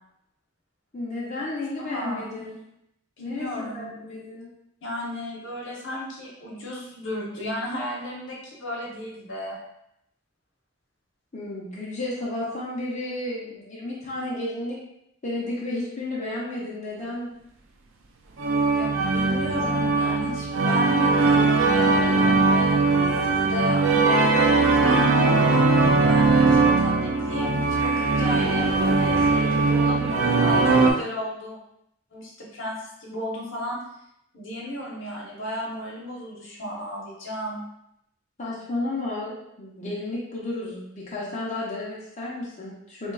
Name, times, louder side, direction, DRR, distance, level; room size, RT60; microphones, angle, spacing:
voice 1, 0.9-2.6 3.2-4.5 11.3-14.8 15.2-17.3 38.4-43.1, left 2 dB, 40° left, -6 dB, 0.8 m, -32 dB
voice 2, 1.8-2.2 3.2-3.9 4.8-9.6 18.7-31.6 32.1-33.8 34.3-37.6, equal, 70° left, -3 dB, 1.0 m, -34 dB
sound 1, 18.4-30.9, right 3 dB, 90° right, 0.5 m, -20 dB
4.0 x 3.0 x 2.3 m, 0.79 s
head